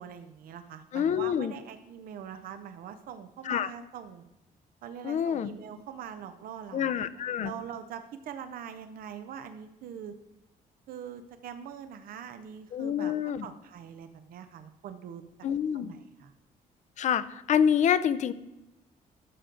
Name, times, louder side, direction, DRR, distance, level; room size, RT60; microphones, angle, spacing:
voice 1, 0.0-4.2 4.8-7.0 7.4-10.2 10.9-15.2 15.7-16.3, right 8 dB, 75° right, 9 dB, 0.7 m, -43 dB
voice 2, 0.9-1.5 3.5-3.7 5.0-5.5 6.7-7.5 12.7-13.4 15.4-15.9 17.0-18.3, left 8 dB, 55° left, 14 dB, 0.5 m, -27 dB
12.0 x 6.8 x 3.8 m, 0.94 s
cardioid pair, 135°, 15 cm